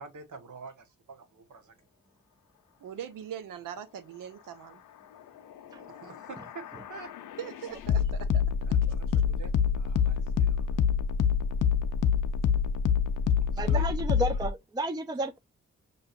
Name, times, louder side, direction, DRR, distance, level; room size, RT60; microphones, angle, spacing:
voice 1, 0.0-1.7 5.9-7.1 7.4-7.5 8.6-10.8 13.4-13.8, right 4 dB, 65° right, 1.1 m, -47 dB
voice 2, 2.8-4.8 7.4-8.4 8.9-9.0, right 9 dB, 85° right, 0.7 m, -41 dB
sound 1, 5.8-14.5, left 7 dB, 75° left, 0.5 m, -27 dB
voice 3, 13.6-15.4, right 1 dB, 15° right, 0.5 m, -32 dB
5.4 x 2.7 x 2.4 m
supercardioid pair, 45°, 32 cm